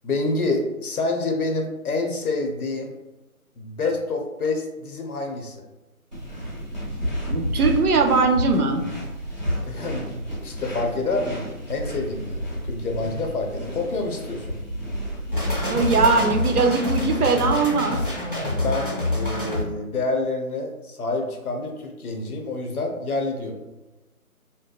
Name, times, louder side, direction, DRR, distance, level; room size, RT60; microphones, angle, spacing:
voice 1, 0.0-2.9 3.6-5.7 9.6-11.4 11.7-14.6 18.3-23.6, left 3 dB, 80° left, 2 dB, 0.7 m, -27 dB
sound 1, 6.1-16.2, equal, 30° right, 0.6 m, -31 dB
voice 2, 7.3-8.8 15.7-18.0, right 4 dB, 90° right, 5 dB, 0.5 m, -20 dB
sound 2, 15.3-19.6, left 2 dB, 40° left, 0.5 m, -26 dB
2.6 x 2.1 x 2.2 m, 1.1 s
figure-of-eight pair, 160°, 44 cm